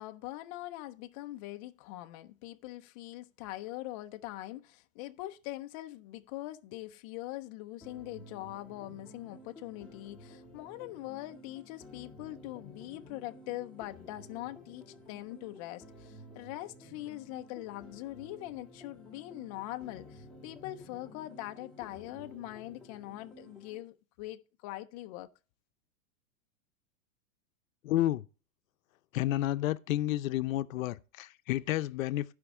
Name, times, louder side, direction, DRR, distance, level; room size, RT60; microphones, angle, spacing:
voice 1, 0.0-25.3, left 16 dB, 30° left, 0.4 m, -42 dB
sound 1, 7.8-23.8, left 1 dB, ahead, 1.4 m, -53 dB
voice 2, 27.8-28.2 29.1-32.3, left 14 dB, 80° left, 0.6 m, -30 dB
14.5 x 5.2 x 3.6 m
supercardioid pair, 155°, 40 cm